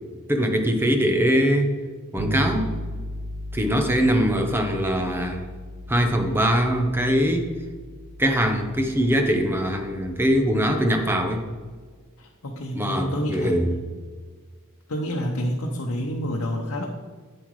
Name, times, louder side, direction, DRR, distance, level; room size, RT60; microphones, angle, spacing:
voice 1, 0.3-1.7 2.1-2.7 3.5-5.4 5.9-7.5 8.2-11.4 12.7-13.7, equal, 10° right, 4 dB, 0.8 m, -22 dB
Bass guitar, 2.2-11.8, equal, 60° right, 0.5 m, -36 dB
voice 2, 12.2-13.6 14.9-16.9, equal, 85° left, 0 dB, 0.8 m, -28 dB
8.8 x 7.7 x 3.2 m, 1.5 s
head